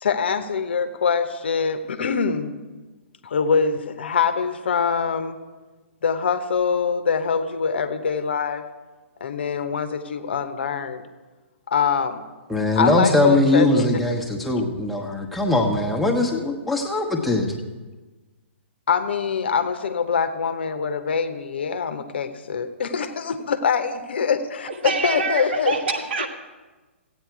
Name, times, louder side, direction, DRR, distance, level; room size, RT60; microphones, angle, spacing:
voice 1, 0.0-2.5 3.2-5.3 6.0-8.6 9.2-11.0 11.7-12.2 12.8-13.9 18.9-25.7, left 6 dB, 55° left, 10 dB, 1.0 m, -24 dB
voice 2, 12.5-17.5, left 2 dB, ahead, 0 dB, 1.2 m, -21 dB
voice 3, 24.7-26.3, right 4 dB, 55° right, 5 dB, 1.4 m, -26 dB
15.0 x 9.0 x 4.7 m, 1.2 s
figure-of-eight pair, 120°, 7 cm